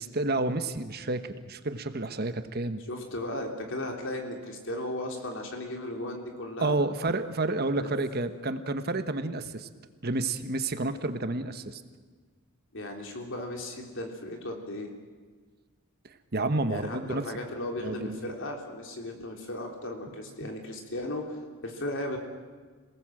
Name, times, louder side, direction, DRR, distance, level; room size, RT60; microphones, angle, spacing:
voice 1, 0.0-2.8 6.6-9.7 10.0-11.8 16.3-17.2 17.8-18.3, right 2 dB, 45° right, 9 dB, 1.2 m, -30 dB
voice 2, 2.9-6.8 7.8-8.0 12.7-14.9 16.7-22.2, left 1 dB, 60° left, 2 dB, 3.7 m, -36 dB
27.0 x 18.5 x 7.8 m, 1.5 s
head